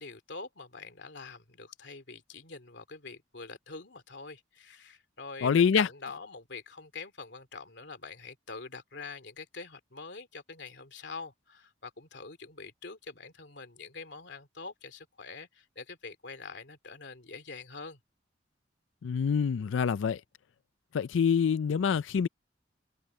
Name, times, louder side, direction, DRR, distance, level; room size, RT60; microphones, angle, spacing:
voice 1, 0.0-18.0, left 4 dB, 65° left, 2.8 m, -45 dB
voice 2, 5.4-5.9 19.0-20.2 20.9-22.3, left 6 dB, 85° left, 0.4 m, -26 dB
head